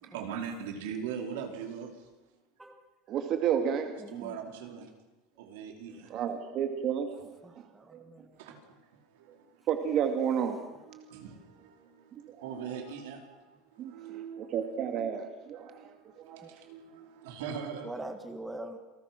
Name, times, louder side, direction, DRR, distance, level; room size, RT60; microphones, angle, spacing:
voice 1, 0.0-1.9 4.1-4.9 5.4-6.1 8.3-9.5 10.9-14.7 15.5-17.9, right 7 dB, 85° right, 3 dB, 4.8 m, -41 dB
voice 2, 3.1-3.9 6.1-7.3 7.9-8.0 9.7-10.6 12.1-12.4 13.8-16.5, right 8 dB, 40° right, 5 dB, 2.4 m, -31 dB
voice 3, 4.0-4.3 7.4-8.4 16.4-16.5 17.8-18.8, right 1 dB, 5° right, 6 dB, 1.8 m, -43 dB
28.5 x 19.5 x 6.2 m, 1.1 s
cardioid pair, 160°, 0 cm